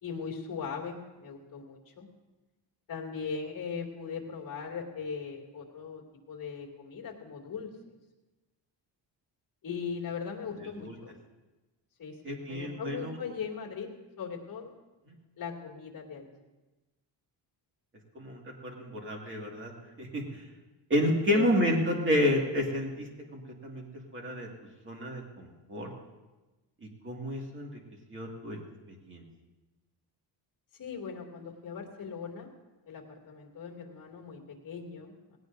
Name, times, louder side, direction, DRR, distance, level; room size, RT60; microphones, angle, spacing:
voice 1, 0.0-2.1 2.9-7.7 9.6-11.1 12.0-13.9 14.2-14.7 15.4-16.3 21.3-21.5 21.9-22.0 30.7-32.5 32.8-35.4, left 6 dB, 45° left, -1 dB, 2.5 m, -39 dB
voice 2, 12.2-13.2 18.1-19.7 20.0-20.5 20.9-23.9 24.1-24.5 24.8-25.9 27.0-27.7 28.1-28.6 28.9-29.2, left 1 dB, 25° right, 0 dB, 2.1 m, -30 dB
19.0 x 17.5 x 2.7 m, 1.1 s
cardioid pair, 160°, 45 cm